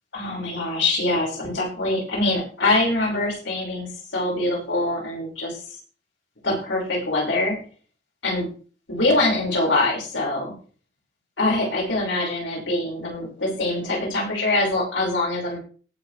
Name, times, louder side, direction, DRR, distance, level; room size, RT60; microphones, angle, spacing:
voice 1, 0.1-5.8 6.4-7.6 8.2-8.5 8.9-10.5 11.4-15.6, left 2 dB, 90° left, -2 dB, 5.4 m, -24 dB
18.5 x 7.0 x 3.3 m, 0.40 s
head